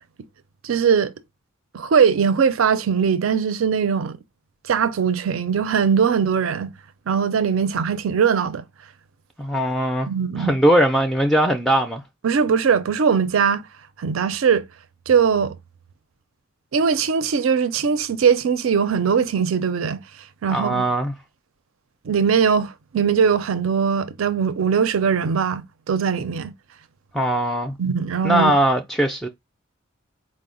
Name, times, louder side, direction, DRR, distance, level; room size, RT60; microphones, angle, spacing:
voice 1, 0.6-1.1 1.7-4.2 4.7-6.7 7.1-8.6 10.1-10.6 12.2-13.6 14.0-14.7 15.1-15.6 16.7-20.0 20.4-20.9 22.0-26.5 27.8-28.5, right 6 dB, 80° right, 0.4 m, -20 dB
voice 2, 9.4-10.1 10.4-12.0 20.5-21.1 27.1-27.7 28.2-29.3, right 1 dB, ahead, 0.3 m, -20 dB
4.8 x 2.0 x 3.7 m
head